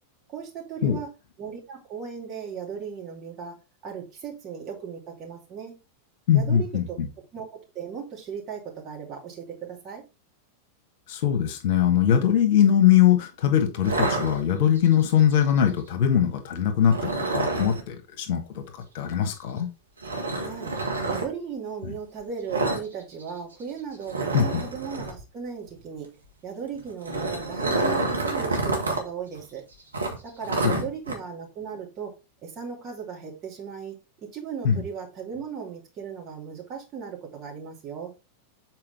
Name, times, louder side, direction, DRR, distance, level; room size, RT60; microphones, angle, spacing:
voice 1, 0.3-1.1 1.4-3.6 3.8-5.8 6.3-6.8 7.3-10.0 20.4-20.8 21.0-26.1 26.4-29.6 30.2-32.1 32.4-34.0 34.3-38.1, right 7 dB, 35° right, 2.7 m, -37 dB
voice 2, 6.3-7.1 11.1-19.7 21.8-21.9 24.3-24.7 30.6-30.8 34.6-34.8, left 9 dB, 50° left, 1.4 m, -22 dB
sound 1, 13.8-14.9 16.9-17.8 20.0-21.3 22.5-22.9 23.1-23.3 23.6-23.7 24.1-25.2 26.8-29.0 29.3-29.4 29.9-31.2, right 2 dB, 75° right, 1.7 m, -28 dB
7.5 x 4.6 x 3.5 m
figure-of-eight pair, 90°, 0 cm